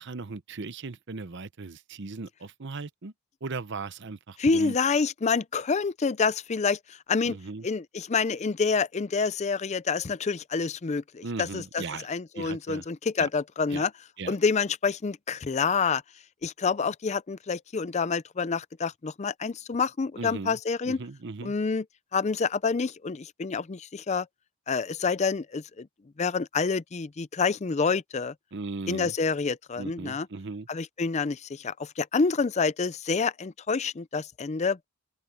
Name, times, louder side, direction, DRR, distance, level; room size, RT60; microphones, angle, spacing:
voice 1, 0.0-3.1 3.4-4.8 7.2-7.7 11.2-12.1 12.4-12.9 13.2-13.3 13.7-13.8 14.2-14.4 20.2-20.6 20.8-21.5 28.5-29.1 29.8-30.7, right 3 dB, 55° right, 0.8 m, -37 dB
voice 2, 4.4-7.4 7.6-13.9 14.3-16.0 16.4-21.0 21.4-21.8 22.1-24.3 24.7-25.9 26.2-28.3 28.9-30.3 30.7-34.8, left 5 dB, 30° left, 0.4 m, -27 dB
open air
head